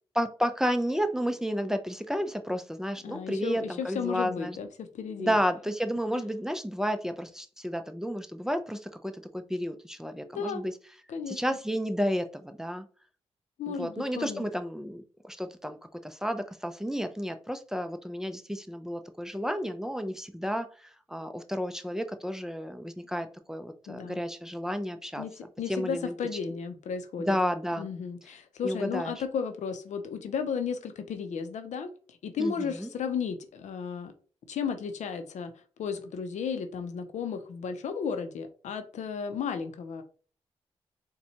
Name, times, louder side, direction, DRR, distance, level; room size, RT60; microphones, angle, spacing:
voice 1, 0.1-4.6 5.2-10.7 11.3-12.9 13.7-25.2 25.7-26.1 27.2-27.9 28.6-29.1 32.4-32.9, equal, 5° right, 0.5 m, -31 dB
voice 2, 3.0-5.3 10.2-10.6 11.1-11.4 13.6-14.5 23.9-24.2 25.2-27.4 27.8-31.9 32.2-34.1 34.5-35.5 35.8-40.0, left 6 dB, 80° left, 0.6 m, -34 dB
4.1 x 2.2 x 2.8 m
supercardioid pair, 50°, 12 cm